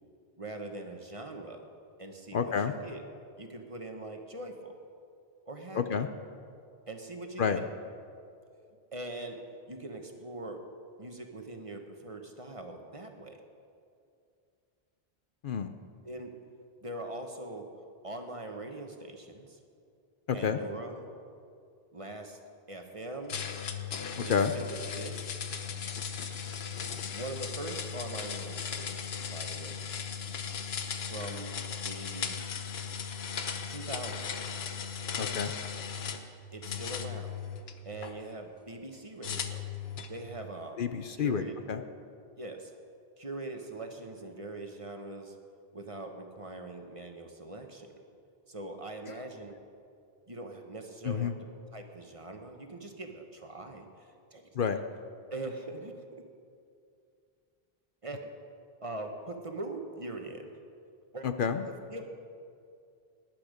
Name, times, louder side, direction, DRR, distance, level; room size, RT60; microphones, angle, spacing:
voice 1, 0.4-1.7 2.0-3.0 3.4-4.8 5.5-5.8 6.9-7.6 8.9-9.4 9.7-10.6 11.0-13.4 16.0-16.3 16.8-17.7 18.0-19.6 20.3-21.1 21.9-22.4 22.7-23.4 24.2-25.3 27.1-29.8 31.1-31.5 31.8-32.4 33.7-34.4 36.5-37.4 37.8-39.6 40.1-40.8 41.2-41.6 42.4-42.7 43.2-45.4 45.7-48.0 48.5-49.5 50.3-51.3 51.7-54.4 55.3-56.0 58.0-58.3 58.8-60.5 61.1-61.2 61.7-62.0, right 2 dB, 35° right, 4 dB, 1.1 m, -42 dB
voice 2, 2.3-2.7 5.7-6.1 7.4-7.6 15.4-15.7 20.3-20.6 24.2-24.5 35.2-35.5 40.8-41.8 51.0-51.4 54.5-54.8 61.2-61.7, left 6 dB, 60° left, 9 dB, 0.8 m, -29 dB
sound 1, 23.3-36.3 36.6-38.1 39.2-40.2, left 7 dB, 80° left, 1.1 m, -37 dB
18.5 x 10.5 x 5.1 m, 2.4 s
omnidirectional pair, 1.0 m